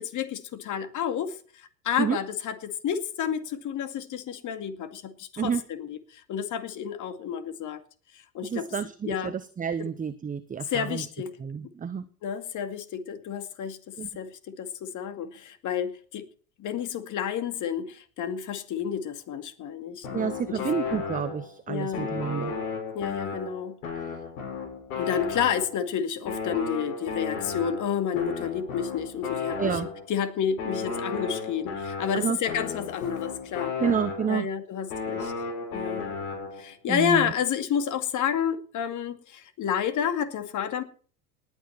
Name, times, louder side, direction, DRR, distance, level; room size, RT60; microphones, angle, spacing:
voice 1, 0.0-7.8 8.3-8.7 9.0-9.3 10.6-11.3 12.2-16.2 16.6-20.7 21.7-22.1 22.9-23.8 24.9-29.8 30.1-33.7 34.3-35.3 35.7-36.1 36.6-40.8, left 8 dB, 40° left, 11 dB, 2.2 m, -30 dB
voice 2, 8.5-11.0 11.4-12.1 14.0-14.1 20.1-22.5 29.6-29.9 32.1-32.4 33.8-34.5 36.9-37.3, right 7 dB, 20° right, 12 dB, 0.9 m, -29 dB
sound 1, 20.0-21.6 21.9-25.9 26.3-30.1 30.6-34.5 34.9-36.7, left 5 dB, 65° left, 6.2 m, -34 dB
19.5 x 9.1 x 4.3 m, 0.42 s
figure-of-eight pair, 75°, 45 cm